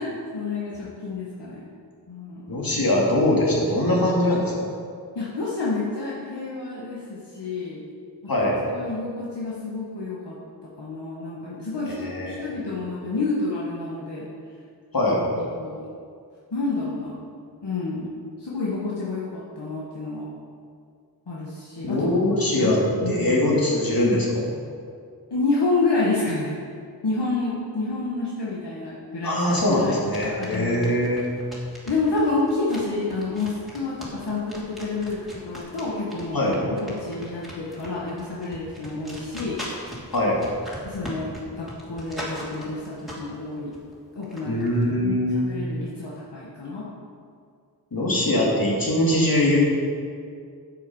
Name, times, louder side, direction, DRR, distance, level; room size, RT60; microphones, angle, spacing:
voice 1, 0.0-1.6 2.1-2.5 5.1-7.8 8.7-10.3 10.8-14.3 15.3-15.8 16.5-17.2 17.6-18.1 18.4-20.3 21.3-22.1 22.5-22.7 23.0-23.3 25.3-26.5 27.0-29.4 29.8-30.0 30.3-30.9 31.9-36.5 36.8-39.6 40.8-43.7 44.1-44.6 45.0-45.1 45.5-46.9, left 3 dB, 80° left, -6 dB, 1.6 m, -29 dB
voice 2, 2.5-4.5 8.3-8.6 11.9-12.5 14.9-15.2 21.8-22.8 23.1-24.5 29.2-31.2 36.3-36.6 40.1-40.4 44.5-45.4 47.9-49.6, left 1 dB, 55° left, -4 dB, 2.6 m, -22 dB
sound 1, 29.3-43.4 43.7-44.8, equal, ahead, 2.8 m, -39 dB
9.5 x 7.5 x 5.6 m, 2.2 s
wide cardioid pair, 60°, 41 cm